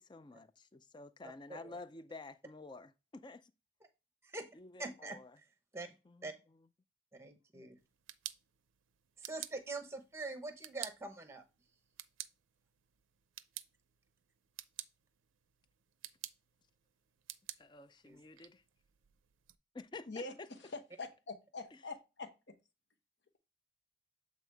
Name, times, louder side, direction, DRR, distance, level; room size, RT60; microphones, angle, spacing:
voice 1, 0.0-3.5 4.5-5.4 6.1-6.3 17.6-18.6 19.7-20.5 21.7-21.8, left 3 dB, 25° left, 0.4 m, -51 dB
voice 2, 4.8-5.2 5.7-5.9 6.2-6.3 7.1-7.8 9.2-11.4 18.0-18.2, right 3 dB, 15° right, 0.9 m, -44 dB
sound 1, 7.8-19.6, right 14 dB, 85° right, 0.5 m, -52 dB
voice 3, 21.0-22.3, left 3 dB, 60° left, 1.1 m, -44 dB
8.0 x 4.1 x 3.4 m
head